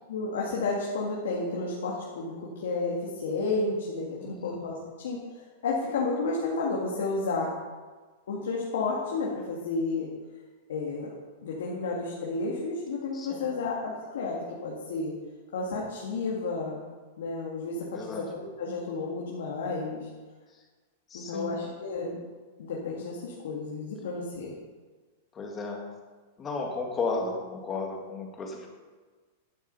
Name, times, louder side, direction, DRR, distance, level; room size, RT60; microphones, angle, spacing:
voice 1, 0.1-4.8 5.0-5.2 5.6-7.5 8.3-10.1 10.7-11.1 11.4-15.1 15.5-16.8 17.2-20.1 21.1-22.2 22.6-24.5, left 3 dB, 90° left, -4 dB, 2.2 m, -31 dB
voice 2, 4.2-4.6 13.1-13.5 17.9-18.3 21.1-21.5 25.3-25.9 26.4-28.7, left 3 dB, 15° left, 1 dB, 1.7 m, -34 dB
11.5 x 7.1 x 5.6 m, 1.4 s
supercardioid pair, 165°, 0 cm